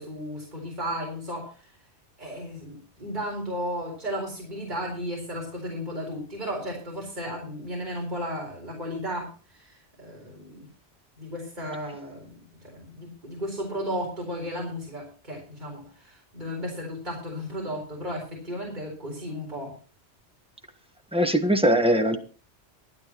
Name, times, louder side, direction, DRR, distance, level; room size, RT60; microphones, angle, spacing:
voice 1, 0.0-1.7 2.2-10.7 11.2-19.8, equal, 40° right, -2 dB, 4.5 m, -34 dB
voice 2, 21.1-22.2, right 1 dB, 5° right, 4 dB, 1.4 m, -21 dB
24.0 x 9.0 x 3.0 m, 0.37 s
omnidirectional pair, 1.2 m